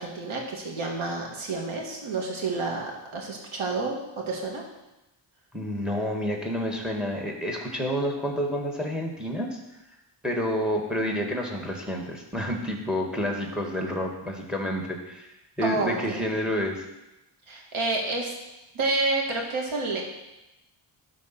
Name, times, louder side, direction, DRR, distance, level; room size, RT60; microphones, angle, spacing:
voice 1, 0.0-4.6 15.6-16.3 17.5-18.3 18.7-20.1, right 3 dB, 75° right, 0 dB, 2.0 m, -29 dB
voice 2, 5.5-9.6 10.2-15.3 15.6-16.8, equal, ahead, 1 dB, 1.9 m, -29 dB
12.0 x 4.0 x 6.0 m, 0.96 s
cardioid pair, 80°, 49 cm